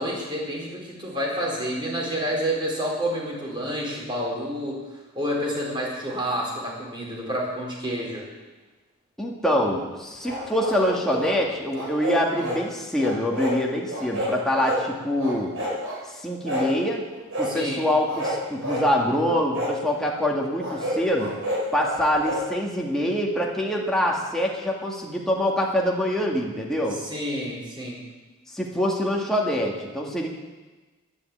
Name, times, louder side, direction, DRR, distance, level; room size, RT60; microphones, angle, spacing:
voice 1, 0.0-4.8 5.1-8.3 17.4-17.9 26.9-28.0, equal, 25° right, -3 dB, 4.4 m, -29 dB
voice 2, 9.2-15.5 16.1-17.0 17.4-21.3 21.7-27.0 28.5-30.3, equal, 5° left, -3 dB, 2.0 m, -25 dB
sound 1, 10.2-11.3 11.7-12.6 13.0-13.6 13.9-14.8 15.2-16.0 16.4-16.7 17.3-17.5 18.0-18.9 19.5-19.7 20.6-22.4, equal, 85° right, 6.2 m, -29 dB
11.5 x 11.0 x 8.7 m, 1.2 s
head